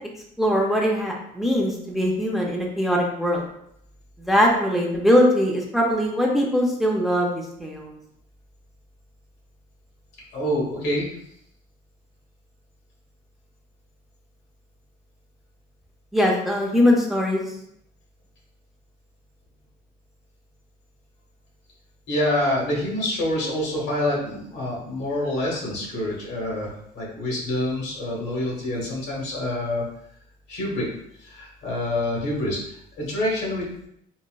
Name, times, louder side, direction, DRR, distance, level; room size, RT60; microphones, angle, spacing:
voice 1, 0.4-3.4 4.2-7.9 16.1-17.4, equal, ahead, -1 dB, 0.5 m, -21 dB
voice 2, 10.3-11.1 22.1-29.8 30.5-30.9 31.2-33.7, left 1 dB, 80° left, -4 dB, 1.2 m, -26 dB
3.9 x 2.1 x 2.2 m, 0.73 s
cardioid pair, 110°, 17 cm